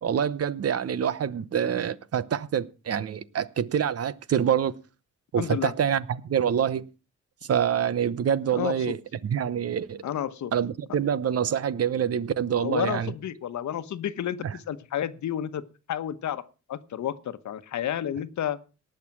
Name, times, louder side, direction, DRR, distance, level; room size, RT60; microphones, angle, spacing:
voice 1, 0.0-4.7 5.3-6.9 7.5-9.0 9.2-10.0 10.5-13.1 14.4-14.5, right 8 dB, 55° right, 0.9 m, -26 dB
voice 2, 5.4-5.7 8.5-8.9 10.0-10.5 12.6-15.6 15.9-16.4 16.7-18.6, left 10 dB, 75° left, 1.1 m, -31 dB
18.5 x 6.7 x 5.9 m
cardioid pair, 110°, 29 cm